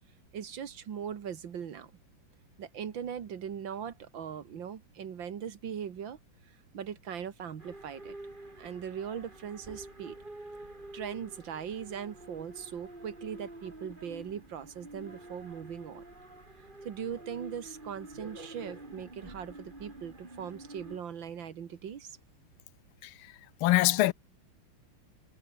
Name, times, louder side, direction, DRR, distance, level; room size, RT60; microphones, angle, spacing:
voice 1, 0.3-1.9 2.6-6.2 6.7-8.2 8.6-10.2 10.9-16.0 16.8-22.2, right 8 dB, 70° right, 2.3 m, -40 dB
sound 1, 7.6-21.0, right 2 dB, 25° right, 4.2 m, -48 dB
voice 2, 23.0-24.1, left 16 dB, 85° left, 1.5 m, -26 dB
omnidirectional pair, 2.2 m